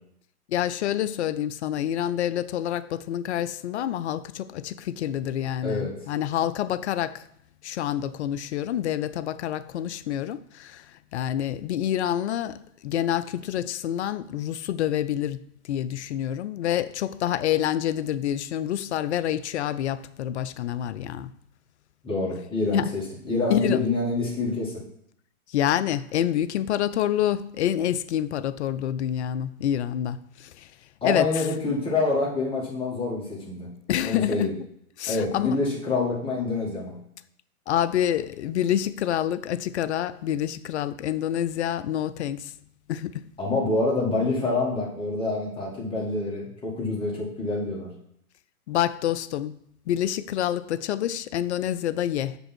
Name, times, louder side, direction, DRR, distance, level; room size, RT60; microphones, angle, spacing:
voice 1, 0.5-7.2 7.6-10.9 11.1-12.6 12.8-21.3 22.7-22.9 23.5-23.8 25.5-30.7 31.0-31.5 33.9-34.5 35.0-35.6 37.7-42.5 42.9-43.2 48.7-49.6 49.9-52.4, left 11 dB, 50° left, 0.4 m, -27 dB
voice 2, 5.6-5.9 22.0-24.7 31.0-33.7 34.0-34.5 35.1-36.9 43.4-47.9, left 3 dB, 10° left, 2.0 m, -26 dB
7.0 x 5.4 x 4.4 m
hypercardioid pair, 135°, 45 cm